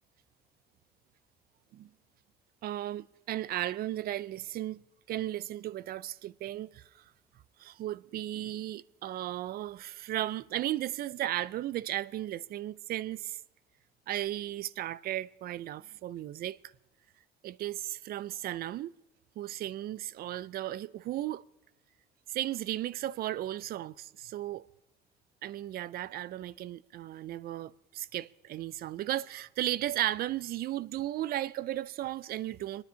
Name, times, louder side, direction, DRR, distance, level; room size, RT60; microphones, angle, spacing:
voice 1, 2.6-4.8 5.1-6.8 7.6-13.4 14.1-16.6 17.4-18.9 19.4-21.4 22.3-24.7 25.4-32.8, right 13 dB, 65° right, 0.5 m, -35 dB
25.0 x 9.7 x 5.6 m
cardioid pair, 110°, 17 cm